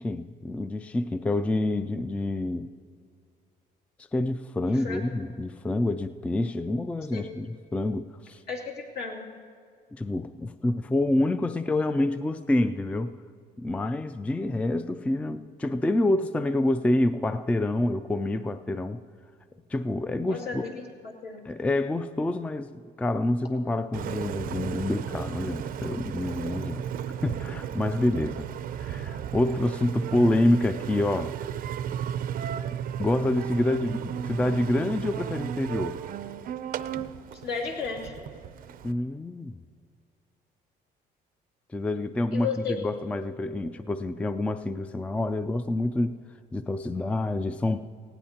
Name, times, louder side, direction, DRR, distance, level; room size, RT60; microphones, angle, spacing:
voice 1, 0.0-2.7 4.1-8.4 9.9-13.2 13.6-19.0 19.7-20.6 21.4-22.7 23.0-26.8 27.2-28.5 28.7-31.4 33.0-36.0 37.0-37.1 38.8-39.6 41.7-46.2 46.5-47.9, left 2 dB, 10° left, 11 dB, 0.3 m, -27 dB
voice 2, 4.7-5.0 7.1-7.4 8.5-9.3 20.2-20.8 21.2-21.4 37.4-38.2 42.3-42.8, left 5 dB, 70° left, -1 dB, 2.6 m, -33 dB
Engine, 23.9-38.9, right 9 dB, 60° right, 0.5 m, -34 dB
19.0 x 16.5 x 2.9 m, 2.2 s
cardioid pair, 110°, 17 cm